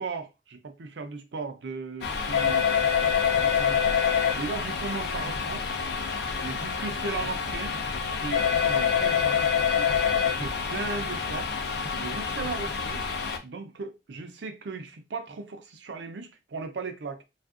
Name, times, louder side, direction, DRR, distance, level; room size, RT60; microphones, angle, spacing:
voice 1, 0.0-2.7 3.0-3.9 4.4-5.7 6.4-9.9 10.2-11.5 12.0-13.1 13.4-17.2, right 4 dB, 90° right, 0.5 m, -37 dB
sound 1, 2.0-13.4, left 6 dB, 70° left, 0.5 m, -26 dB
3.4 x 2.4 x 2.4 m
head